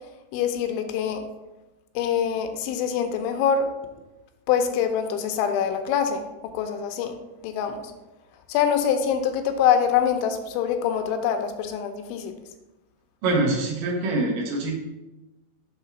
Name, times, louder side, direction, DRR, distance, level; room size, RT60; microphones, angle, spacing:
voice 1, 0.3-1.3 2.0-3.7 4.5-7.2 7.4-7.9 8.5-12.3, left 8 dB, 85° left, 7 dB, 2.9 m, -24 dB
voice 2, 13.2-14.8, right 2 dB, 70° right, -1 dB, 2.1 m, -24 dB
7.5 x 3.2 x 5.7 m, 1.0 s
omnidirectional pair, 5.4 m